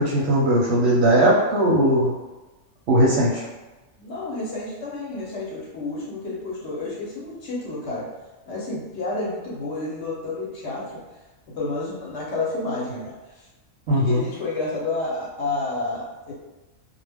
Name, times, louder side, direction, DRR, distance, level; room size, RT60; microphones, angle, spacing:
voice 1, 0.0-2.1 2.9-3.4 13.9-14.2, right 1 dB, 65° right, -4 dB, 0.8 m, -19 dB
voice 2, 4.0-8.1 8.5-11.0 11.5-13.5 13.9-16.3, left 2 dB, 60° left, -5 dB, 0.9 m, -30 dB
2.3 x 2.1 x 3.3 m, 1.1 s
omnidirectional pair, 1.4 m